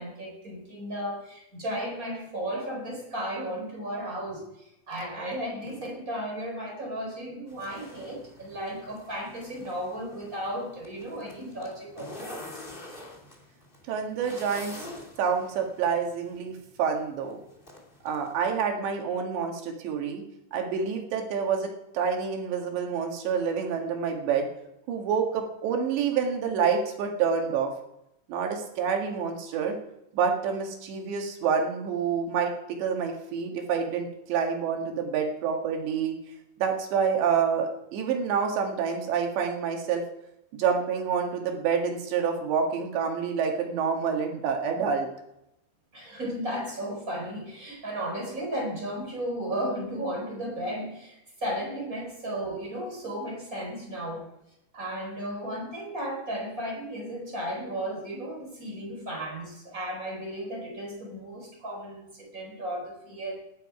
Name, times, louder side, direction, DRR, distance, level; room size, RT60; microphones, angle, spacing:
voice 1, 0.0-12.4 45.9-54.3 54.7-63.4, equal, 20° right, 0 dB, 4.3 m, -34 dB
sound 1, 7.5-18.3, left 1 dB, 20° left, 1.6 m, -47 dB
voice 2, 13.9-14.7 15.2-16.5 16.8-17.4 18.0-20.2 20.5-24.5 24.9-27.7 28.3-29.8 30.1-32.5 32.8-36.2 36.6-40.0 40.5-45.1, right 6 dB, 75° right, 2 dB, 4.0 m, -27 dB
18.0 x 12.0 x 4.9 m, 0.86 s
omnidirectional pair, 5.2 m